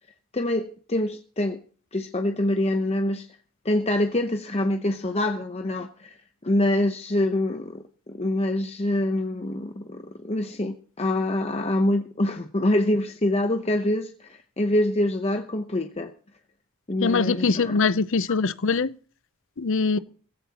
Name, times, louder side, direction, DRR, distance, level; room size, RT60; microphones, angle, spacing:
voice 1, 0.3-1.6 1.9-3.3 3.6-6.1 6.4-16.1 16.9-17.8, left 1 dB, 30° left, 0.9 m, -25 dB
voice 2, 17.0-18.9 19.6-20.0, left 4 dB, 60° left, 0.7 m, -23 dB
17.5 x 15.5 x 3.0 m
head